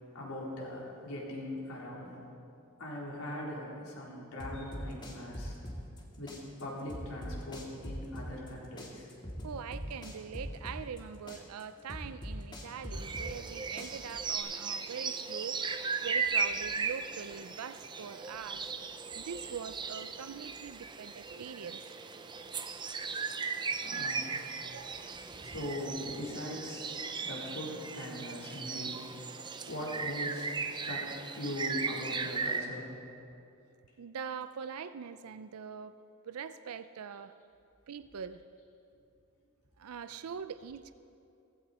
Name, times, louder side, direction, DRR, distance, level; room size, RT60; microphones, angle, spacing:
voice 1, 0.1-2.2 2.8-5.6 6.2-9.1 13.9-14.0 23.8-24.5 25.4-29.0 29.7-32.9 37.0-37.1, left 1 dB, 85° left, -5 dB, 3.9 m, -41 dB
sound 1, 4.4-6.0 6.3-8.5 8.8-11.0 11.3-13.5 13.8-14.4, equal, 20° left, 1.8 m, -41 dB
voice 2, 9.4-15.6 16.0-18.7 19.1-21.8 24.6-25.1 34.0-36.0 36.2-37.3 37.9-38.4 39.8-40.9, right 7 dB, 90° right, 12 dB, 0.5 m, -43 dB
sound 2, 12.9-32.6, right 5 dB, 20° right, 0.5 m, -37 dB
17.0 x 15.5 x 4.2 m, 2.6 s
head